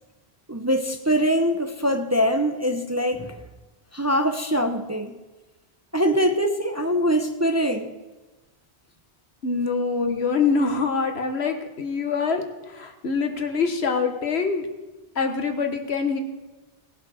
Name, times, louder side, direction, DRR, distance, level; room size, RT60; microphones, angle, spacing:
voice 1, 0.5-3.4 3.9-5.2 5.9-7.9, equal, 15° right, 6 dB, 0.7 m, -23 dB
voice 2, 9.4-14.7 15.1-16.2, left 5 dB, 75° left, 6 dB, 1.5 m, -25 dB
18.5 x 8.0 x 6.3 m, 1.1 s
omnidirectional pair, 1.1 m